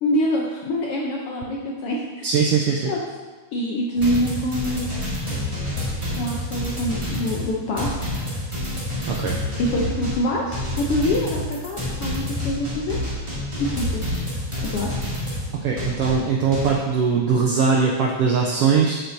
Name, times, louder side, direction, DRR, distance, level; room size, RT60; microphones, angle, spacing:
voice 1, 0.0-2.3 2.9-3.0 3.5-4.9 6.2-8.2 9.6-13.0 13.6-14.2 14.7-14.9, left 1 dB, 75° left, -2 dB, 1.3 m, -25 dB
voice 2, 2.2-2.9 9.1-9.4 15.6-19.0, right 5 dB, 85° right, -1 dB, 1.3 m, -20 dB
sound 1, 4.0-16.7, left 1 dB, 15° right, 1.3 m, -28 dB
8.0 x 7.8 x 2.7 m, 1.3 s
omnidirectional pair, 3.3 m